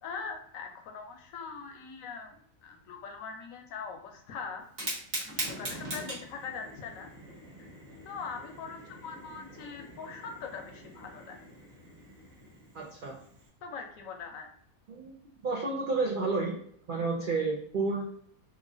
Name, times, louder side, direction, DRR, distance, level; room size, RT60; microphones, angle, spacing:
voice 1, 0.0-4.6 5.2-7.1 8.0-11.4 13.6-14.5, left 5 dB, 75° left, 3 dB, 1.0 m, -42 dB
Fire, 4.6-13.5, right 1 dB, 45° right, 1.2 m, -42 dB
voice 2, 12.7-13.2 14.9-15.1 15.4-16.5 16.9-18.1, right 3 dB, 80° right, -2 dB, 0.4 m, -30 dB
3.0 x 2.4 x 2.5 m, 0.64 s
omnidirectional pair, 1.5 m